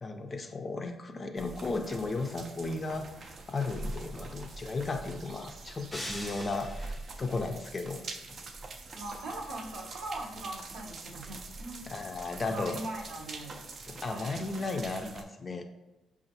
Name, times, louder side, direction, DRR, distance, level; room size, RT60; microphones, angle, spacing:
voice 1, 0.0-8.0 11.9-12.8 13.9-15.6, left 3 dB, 35° left, 6 dB, 0.4 m, -35 dB
sound 1, 1.4-15.2, right 3 dB, 50° right, 0.4 m, -44 dB
sound 2, 5.9-7.2, equal, 10° left, 0.7 m, -41 dB
voice 2, 8.9-11.9 12.5-13.6 14.0-14.4, right 2 dB, 80° right, -1 dB, 0.8 m, -41 dB
5.1 x 2.4 x 2.7 m, 1.0 s
cardioid pair, 90°, 0 cm